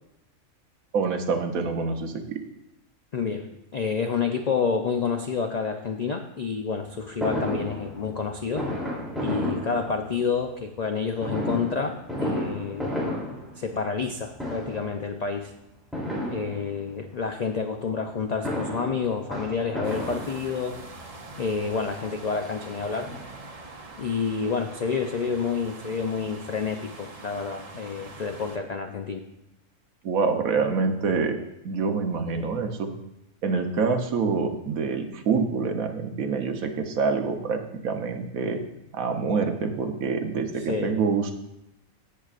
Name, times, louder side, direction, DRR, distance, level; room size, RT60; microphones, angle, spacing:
voice 1, 0.9-2.4 30.0-31.4 31.6-32.9 33.4-38.6 38.9-41.3, right 5 dB, 75° right, 6 dB, 1.3 m, -26 dB
voice 2, 3.1-8.7 9.2-15.5 16.3-20.8 21.4-23.1 24.0-29.2 40.6-40.9, left 5 dB, 85° left, 5 dB, 0.3 m, -29 dB
Fireworks, 7.2-10.4 11.2-14.1 14.3-15.0 15.9-17.0 18.2-20.8 21.6-21.7 22.0-22.1 22.4-23.7 24.0-24.1 24.2-24.3, equal, ahead, 3.0 m, -32 dB
sound 1, 19.8-28.6, right 3 dB, 35° right, 0.7 m, -43 dB
15.5 x 6.6 x 2.5 m, 0.85 s
omnidirectional pair, 1.5 m